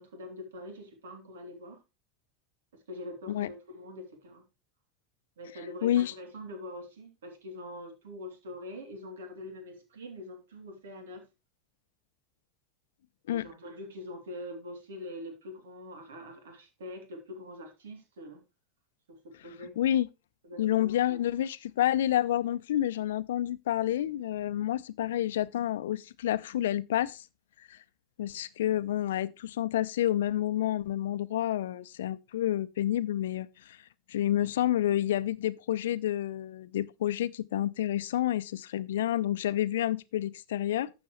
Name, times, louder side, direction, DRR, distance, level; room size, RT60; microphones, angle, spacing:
voice 1, 0.0-1.8 2.9-4.4 5.4-11.2 13.3-18.4 19.4-19.7 20.4-21.2, left 1 dB, 75° right, 3.0 m, -44 dB
voice 2, 5.8-6.1 13.3-13.5 19.8-20.1 20.6-27.2 27.7-27.8 28.2-33.8 34.1-40.9, left 12 dB, 70° left, 0.6 m, -29 dB
12.0 x 7.9 x 3.2 m
figure-of-eight pair, 80°, 0 cm